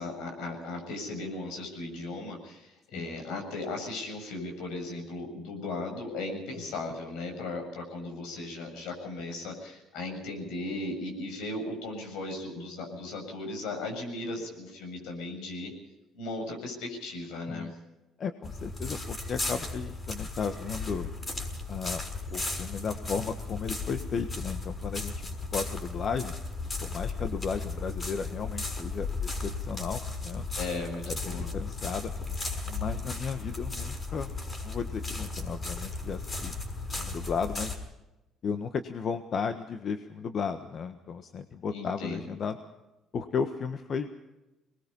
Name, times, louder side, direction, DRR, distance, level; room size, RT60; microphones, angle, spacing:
voice 1, 0.0-15.7 16.1-17.7 30.6-31.5 36.9-37.2 41.7-42.3, left 2 dB, 80° left, 3 dB, 7.3 m, -37 dB
voice 2, 18.2-21.1 21.7-22.0 22.3-26.3 26.8-30.4 31.0-32.1 32.7-34.3 34.6-36.5 37.0-37.8 38.4-42.6 43.1-44.1, left 6 dB, 50° left, 8 dB, 1.4 m, -34 dB
sound 1, 18.4-37.8, left 3 dB, 30° left, 6.1 m, -35 dB
23.0 x 20.5 x 5.5 m, 0.99 s
supercardioid pair, 75°, 0 cm